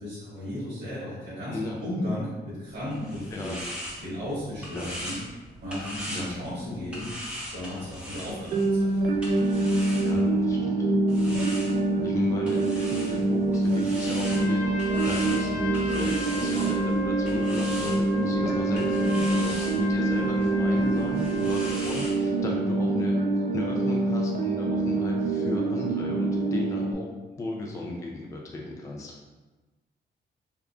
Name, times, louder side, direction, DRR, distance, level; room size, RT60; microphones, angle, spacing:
voice 1, 0.0-3.5 4.0-5.2 5.6-7.1 7.5-9.3, left 1 dB, 70° right, -10 dB, 1.3 m, -35 dB
voice 2, 1.5-1.8 3.3-3.6 4.7-4.9 6.1-6.4 10.0-11.4 12.0-14.6 15.0-27.1 27.4-29.2, left 2 dB, 15° left, -1 dB, 0.3 m, -36 dB
sound 1, 2.7-10.5 11.1-22.2, equal, 5° right, 0.8 m, -40 dB
sound 2, 8.5-26.9, right 2 dB, 50° right, 0.4 m, -25 dB
Trumpet, 14.2-21.8, left 3 dB, 55° left, 0.9 m, -36 dB
3.6 x 3.5 x 2.3 m, 1.2 s
wide cardioid pair, 170°, 19 cm